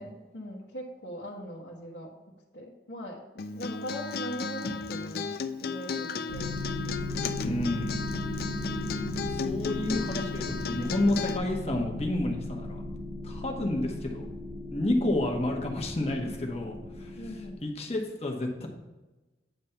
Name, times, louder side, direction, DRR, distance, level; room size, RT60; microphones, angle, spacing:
voice 1, 0.0-2.1 2.5-3.2 3.5-5.3 5.6-7.0 8.8-9.4 17.2-17.6, equal, 75° left, -4 dB, 1.1 m, -41 dB
Acoustic guitar, 3.4-11.4, left 5 dB, 55° left, 0.4 m, -34 dB
sound 1, 6.3-17.6, left 2 dB, 60° right, 1.4 m, -37 dB
voice 2, 7.4-8.0 9.2-12.8 13.2-14.3 14.7-17.2 17.6-18.7, left 1 dB, 35° left, 2 dB, 1.1 m, -30 dB
9.2 x 3.4 x 5.6 m, 1.1 s
head